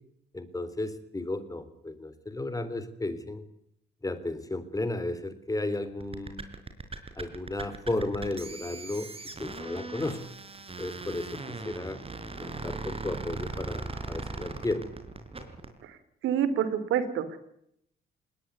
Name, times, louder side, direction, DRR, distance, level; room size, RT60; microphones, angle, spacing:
voice 1, 0.3-3.4 4.0-6.5 7.2-9.1 9.4-10.2 10.8-12.0 12.4-14.9, left 2 dB, 15° left, 13 dB, 3.5 m, -34 dB
sound 1, 6.0-15.7, right 3 dB, 30° right, 4.6 m, -39 dB
voice 2, 16.2-17.4, right 9 dB, 85° right, 14 dB, 2.8 m, -27 dB
21.0 x 19.0 x 9.6 m, 0.74 s
cardioid pair, 90°, 20 cm